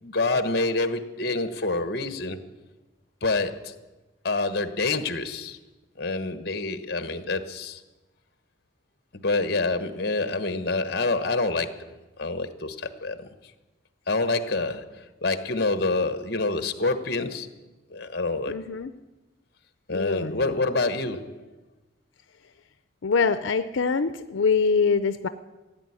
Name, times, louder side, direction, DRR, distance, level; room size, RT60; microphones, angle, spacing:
voice 1, 0.0-2.4 3.2-3.7 4.2-5.6 6.0-7.8 9.1-11.9 12.2-13.3 14.1-17.5 17.9-18.6 19.9-21.5, left 3 dB, 50° left, 1.1 m, -27 dB
voice 2, 18.5-18.9 19.9-20.5 23.0-25.3, left 5 dB, 85° left, 0.6 m, -24 dB
16.0 x 8.6 x 9.7 m
head